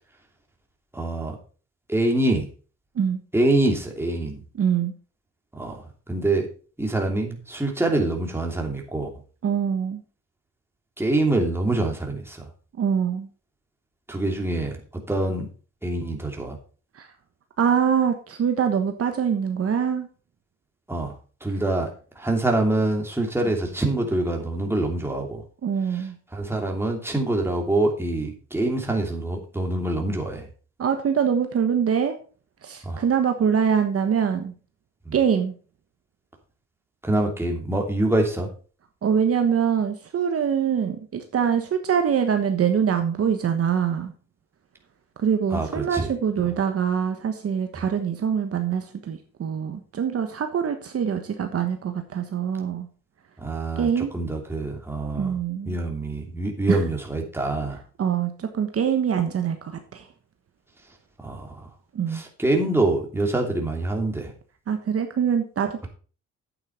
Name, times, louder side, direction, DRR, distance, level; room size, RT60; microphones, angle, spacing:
voice 1, 0.9-1.4 1.9-2.5 3.3-4.4 5.5-5.8 6.1-6.5 6.8-9.1 11.0-12.4 14.1-15.5 15.8-16.6 20.9-21.1 21.4-21.9 22.2-25.4 26.3-30.5 32.8-33.0 35.1-35.2 37.0-38.5 45.5-46.1 53.4-55.4 55.7-57.8 61.2-61.7 62.1-64.3, right 2 dB, 10° right, 1 dB, 2.8 m, -25 dB
voice 2, 4.6-4.9 9.4-10.0 12.8-13.3 16.9-17.1 17.6-20.1 25.6-26.2 30.8-32.2 32.6-34.5 35.1-35.5 39.0-44.1 45.2-52.9 53.8-54.1 55.2-55.8 56.7-56.8 58.0-59.6 59.9-60.1 61.9-62.2 64.7-65.9, right 7 dB, 50° right, 6 dB, 1.3 m, -24 dB
8.7 x 8.6 x 4.3 m, 0.38 s
cardioid pair, 90°, 30 cm